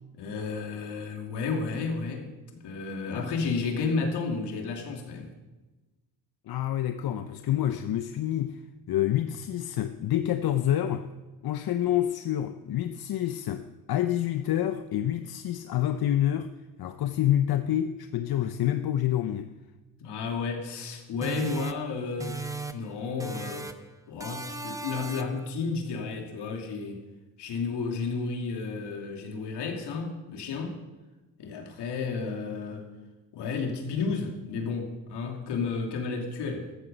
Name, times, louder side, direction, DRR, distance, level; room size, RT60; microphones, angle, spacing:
voice 1, 0.1-2.3 2.6-5.3 20.0-23.7 24.1-27.0 27.4-30.8 31.4-32.9 33.3-36.7, left 4 dB, 75° left, 2.8 m, -32 dB
voice 2, 6.5-8.6 8.9-11.1 11.4-16.5 16.8-19.5, left 12 dB, 60° left, 0.8 m, -27 dB
sound 1, 21.2-22.9 23.2-23.9 24.2-25.5, right 3 dB, 10° right, 1.1 m, -37 dB
14.5 x 14.0 x 5.4 m
supercardioid pair, 70°, 41 cm